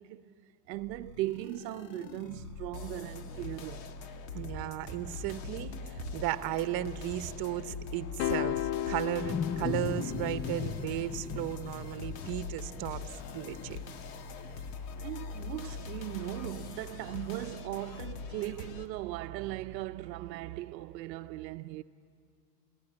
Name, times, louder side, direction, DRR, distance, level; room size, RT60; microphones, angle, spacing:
voice 1, 0.0-3.9 14.6-14.7 15.0-21.8, right 16 dB, 80° right, 0.7 m, -38 dB
sound 1, 0.7-18.9, left 5 dB, 65° left, 1.8 m, -43 dB
voice 2, 4.3-13.0 13.3-13.8, right 13 dB, 45° right, 1.0 m, -35 dB
sound 2, 8.2-10.6, left 12 dB, 80° left, 0.8 m, -34 dB
Wild animals, 8.2-13.3, left 6 dB, 20° left, 0.5 m, -37 dB
22.5 x 16.0 x 9.9 m
supercardioid pair, 110°, 50 cm